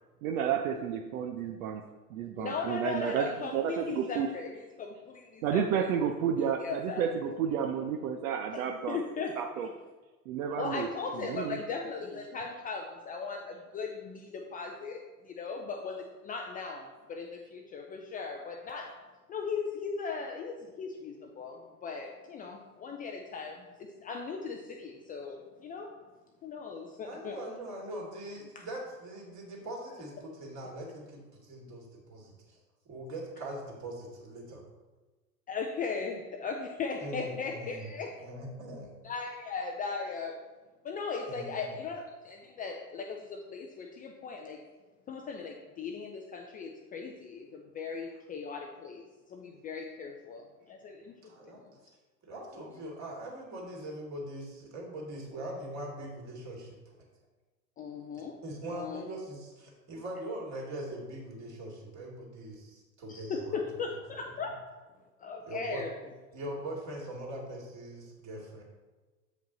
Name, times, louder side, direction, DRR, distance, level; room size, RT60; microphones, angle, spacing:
voice 1, 0.2-4.3 5.4-9.0 9.4-9.7 10.3-10.9 11.1-11.6, right 8 dB, 60° right, 5 dB, 0.7 m, -31 dB
voice 2, 2.4-5.9 6.6-7.0 8.5-8.6 8.9-9.3 10.6-19.0 19.3-25.9 26.4-27.4 28.6-28.7 35.5-38.2 39.0-40.4 40.8-44.6 45.1-49.0 49.3-51.1 51.5-51.6 57.8-58.3 58.7-59.1 63.1-64.6 65.2-65.9, left 5 dB, 20° left, 2 dB, 0.5 m, -38 dB
voice 3, 27.0-32.6 32.9-34.6 37.0-37.9 38.2-38.9 41.3-41.8 51.2-51.6 52.2-57.0 58.4-64.0 65.5-65.8 66.3-68.6, right 1 dB, 35° right, -2 dB, 2.5 m, -42 dB
7.8 x 5.1 x 4.0 m, 1.2 s
hypercardioid pair, 95°, 48 cm